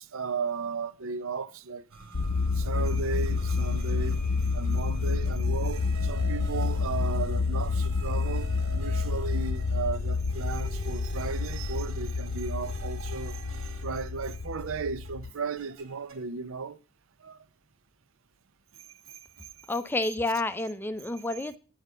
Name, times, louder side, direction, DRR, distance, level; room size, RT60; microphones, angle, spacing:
voice 1, 0.0-1.8 2.6-4.2 4.5-13.4 13.8-16.8 17.2-17.4 19.4-19.5, right 5 dB, 70° right, 0.6 m, -35 dB
sound 1, 1.9-14.8 15.0-16.2, right 3 dB, 85° right, 2.3 m, -48 dB
Low freq rumble, 2.1-15.3, left 4 dB, 85° left, 0.8 m, -29 dB
voice 2, 19.7-21.6, left 2 dB, 10° left, 0.5 m, -29 dB
10.0 x 4.8 x 6.6 m
head